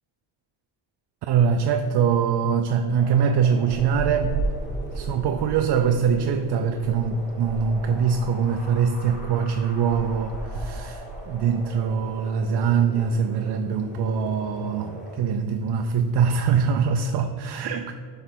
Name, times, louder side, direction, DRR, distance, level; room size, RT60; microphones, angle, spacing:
voice 1, 1.2-4.4 4.9-17.9, right 6 dB, 65° right, 7 dB, 0.5 m, -23 dB
Wind, 2.9-15.2, equal, 20° left, 1.8 m, -42 dB
sound 1, 3.7-12.2 12.5-12.7 13.1-13.9 14.3-14.6 14.9-15.0 15.2-15.6 16.2-16.7, right 3 dB, 85° right, 1.0 m, -35 dB
7.8 x 3.4 x 6.0 m, 2.2 s
cardioid pair, 90°, 43 cm